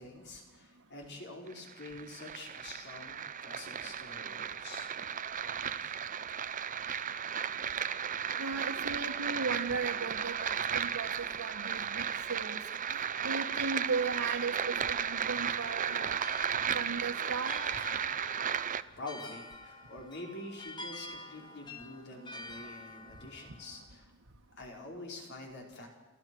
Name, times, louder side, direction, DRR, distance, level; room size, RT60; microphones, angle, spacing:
voice 1, 0.0-4.9 5.8-6.0 18.6-24.1 24.6-25.9, left 2 dB, 55° left, 1 dB, 5.0 m, -46 dB
sound 1, 1.5-18.8, right 8 dB, 40° right, 0.7 m, -35 dB
voice 2, 8.4-11.1 11.4-12.6 12.9-16.2 16.7-17.6, right 4 dB, 90° right, -1 dB, 1.6 m, -36 dB
sound 2, 15.0-23.9, left 2 dB, 20° left, 1.9 m, -49 dB
29.5 x 14.0 x 6.3 m, 1.2 s
head